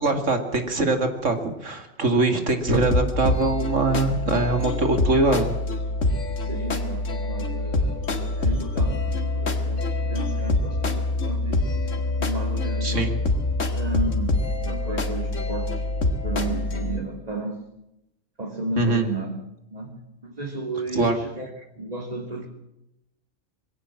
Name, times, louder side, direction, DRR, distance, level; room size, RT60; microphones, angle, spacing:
voice 1, 0.0-1.4 1.6-5.6 12.8-13.2 18.8-19.0 20.9-21.2, right 2 dB, 80° right, 6 dB, 3.0 m, -22 dB
sound 1, 2.7-17.0, left 2 dB, 75° left, 2.4 m, -25 dB
voice 2, 6.4-9.0 9.3-11.6 12.2-13.2 13.7-15.9 16.2-17.6 18.4-19.3 19.7-21.5 21.8-22.5, right 2 dB, 30° right, 1 dB, 2.8 m, -33 dB
22.0 x 17.0 x 7.5 m, 0.84 s
omnidirectional pair, 1.3 m